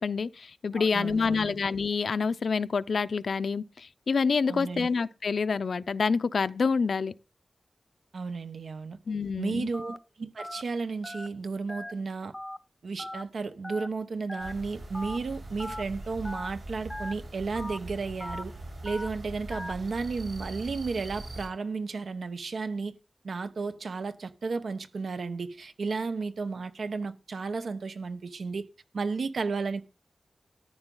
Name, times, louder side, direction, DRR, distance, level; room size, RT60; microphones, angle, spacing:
voice 1, 0.0-7.1 9.1-9.7, left 5 dB, 80° left, 0.5 m, -27 dB
voice 2, 0.7-1.6 4.5-4.9 8.1-9.0 9.4-12.3 12.8-18.5 18.8-22.9 23.2-28.7 28.9-29.8, right 4 dB, 85° right, 1.0 m, -33 dB
Telephone, 9.7-10.0 10.4-10.6 11.0-11.3 11.7-11.9 12.3-12.6 13.0-13.2 13.6-13.9 14.3-14.5 14.9-15.2 15.6-15.8 16.2-16.5 16.9-17.1 17.5-17.8 18.2-18.4 18.9-19.1 19.5-19.7, left 1 dB, 10° left, 0.6 m, -38 dB
sound 1, 14.4-21.5, right 1 dB, 65° right, 5.4 m, -42 dB
14.0 x 9.7 x 3.9 m
wide cardioid pair, 115°, 0 cm